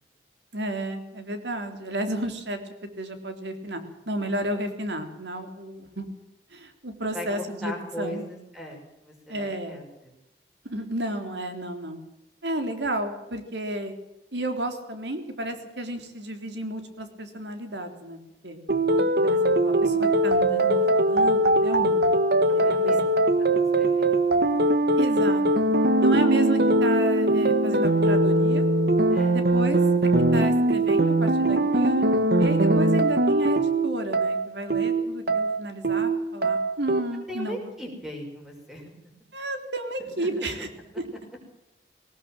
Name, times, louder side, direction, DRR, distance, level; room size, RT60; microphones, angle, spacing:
voice 1, 0.5-2.6 3.0-6.1 6.5-8.3 9.3-9.8 10.7-12.0 12.4-13.9 14.3-18.6 19.2-22.0 22.5-22.9 25.0-25.7 26.0-28.7 29.3-29.8 30.3-32.1 32.4-37.7 39.3-40.7, right 1 dB, 85° right, 7 dB, 3.5 m, -32 dB
voice 2, 7.1-10.1 22.5-23.0 23.6-24.5 28.0-28.2 29.1-29.4 37.3-38.9 40.0-40.5, left 1 dB, 5° right, 1 dB, 6.2 m, -39 dB
sound 1, 18.7-37.0, right 1 dB, 65° right, 1.6 m, -21 dB
19.5 x 19.0 x 7.6 m, 0.92 s
head